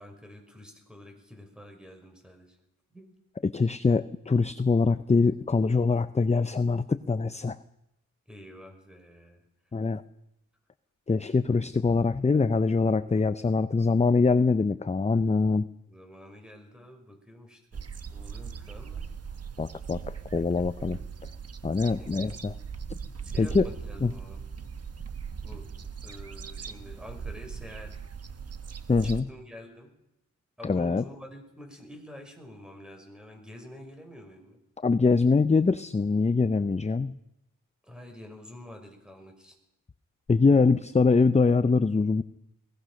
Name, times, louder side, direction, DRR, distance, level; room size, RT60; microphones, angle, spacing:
voice 1, 0.0-2.6 2.9-3.1 8.3-9.4 15.9-17.8 18.1-19.1 21.9-22.4 23.2-24.4 25.4-25.7 26.0-28.0 29.0-29.9 30.6-34.6 37.8-39.6, left 1 dB, ahead, 4 dB, 5.7 m, -47 dB
voice 2, 3.4-7.6 9.7-10.0 11.1-15.7 19.6-21.0 21.6-22.5 23.4-23.7 24.0-24.1 28.9-29.3 30.6-31.0 34.8-37.1 40.3-42.2, left 4 dB, 20° left, 13 dB, 0.7 m, -23 dB
sound 1, 17.7-29.2, right 6 dB, 50° right, 1.5 m, -39 dB
21.5 x 18.5 x 6.5 m, 0.85 s
cardioid pair, 80°, 31 cm